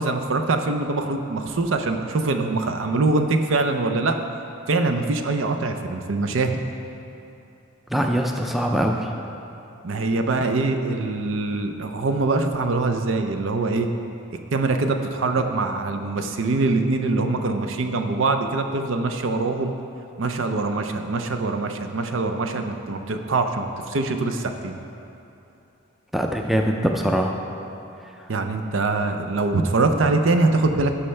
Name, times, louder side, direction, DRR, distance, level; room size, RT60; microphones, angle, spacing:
voice 1, 0.0-4.2 4.7-6.6 9.8-13.9 14.5-19.7 20.2-24.8 28.3-31.0, right 3 dB, 75° right, 6 dB, 0.6 m, -23 dB
voice 2, 7.9-9.1 26.1-27.3, equal, ahead, 2 dB, 0.4 m, -22 dB
14.0 x 5.6 x 3.3 m, 2.8 s
head